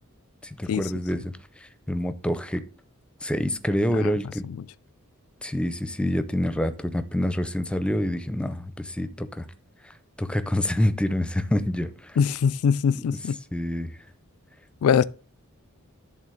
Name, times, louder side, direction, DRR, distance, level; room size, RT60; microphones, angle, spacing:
voice 1, 0.4-1.4 1.9-2.6 3.2-4.5 5.4-9.5 9.8-12.2 13.5-14.0, left 1 dB, 5° left, 0.5 m, -27 dB
voice 2, 12.2-13.4 14.8-15.0, left 7 dB, 80° left, 0.3 m, -22 dB
11.0 x 3.7 x 6.3 m
head